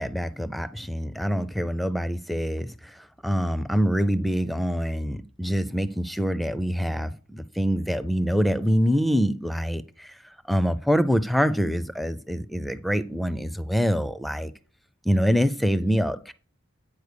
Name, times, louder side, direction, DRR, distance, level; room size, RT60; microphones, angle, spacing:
voice 1, 0.0-14.5 15.1-16.3, equal, ahead, 0.4 m, -25 dB
9.5 x 4.6 x 6.7 m
head